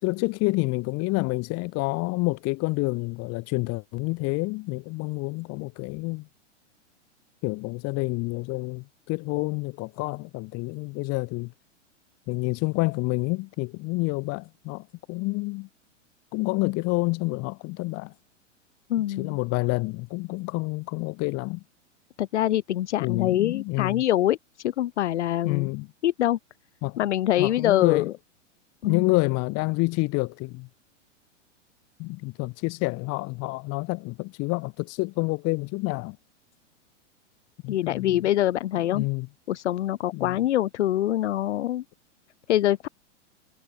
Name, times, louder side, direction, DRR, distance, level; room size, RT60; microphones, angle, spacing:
voice 1, 0.0-6.3 7.4-11.5 12.3-15.7 16.3-18.1 19.2-21.6 23.0-24.0 25.4-25.9 26.8-27.0 27.4-28.1 28.8-30.7 32.0-36.2 37.6-38.2 38.7-39.3 40.1-40.4, left 25 dB, 40° left, 5.0 m, -28 dB
voice 2, 18.9-19.4 22.2-25.7 26.0-26.4 27.0-28.0 28.8-29.1 37.7-39.1 39.5-41.8 42.5-42.9, left 13 dB, 70° left, 1.0 m, -24 dB
hypercardioid pair, 110°, 37 cm